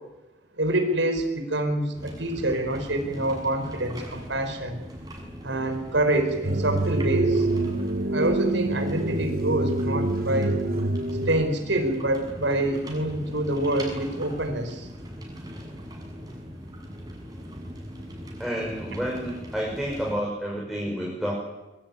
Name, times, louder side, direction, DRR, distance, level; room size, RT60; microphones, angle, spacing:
voice 1, 0.6-4.8 5.4-7.5 8.1-10.6 11.3-14.9, right 1 dB, 75° right, 6 dB, 4.9 m, -26 dB
sound 1, 1.9-20.1, equal, 20° right, 7.1 m, -40 dB
sound 2, 6.4-11.5, right 2 dB, 50° right, 1.2 m, -26 dB
voice 2, 18.4-21.4, equal, ahead, -3 dB, 6.1 m, -30 dB
24.5 x 22.0 x 9.8 m, 1.0 s
head